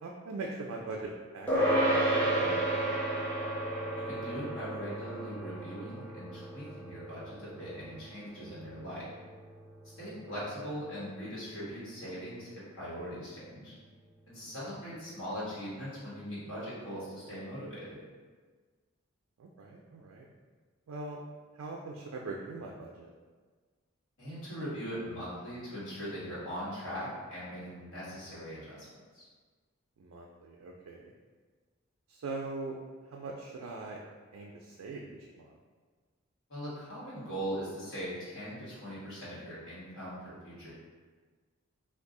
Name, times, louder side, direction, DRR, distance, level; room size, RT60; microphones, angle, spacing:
voice 1, 0.0-2.9 10.2-10.4 14.6-14.7 19.4-20.3 20.9-21.2 21.6-23.1 30.0-31.1 32.1-32.7 33.0-34.0 34.3-35.5, right 3 dB, 80° right, -1 dB, 0.3 m, -41 dB
sound 1, 1.5-11.2, right 1 dB, 5° left, 0.5 m, -33 dB
voice 2, 4.0-9.1 9.8-13.7 14.3-18.0 24.2-28.9 29.1-29.3 36.5-40.7, equal, 75° left, -9 dB, 1.3 m, -40 dB
2.6 x 2.3 x 3.7 m, 1.5 s
head